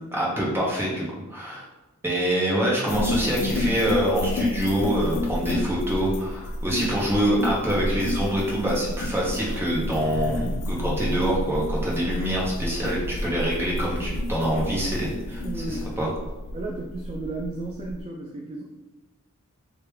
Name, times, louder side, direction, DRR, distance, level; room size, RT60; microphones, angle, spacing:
voice 1, 0.1-1.6 2.0-15.4 16.0-16.1, right 1 dB, 10° right, -5 dB, 0.8 m, -25 dB
sound 1, 2.9-18.0, left 1 dB, 85° left, 0.4 m, -30 dB
voice 2, 10.4-10.7 15.4-15.9 16.5-18.6, right 2 dB, 25° right, -1 dB, 0.3 m, -34 dB
3.1 x 2.8 x 3.3 m, 1.1 s
head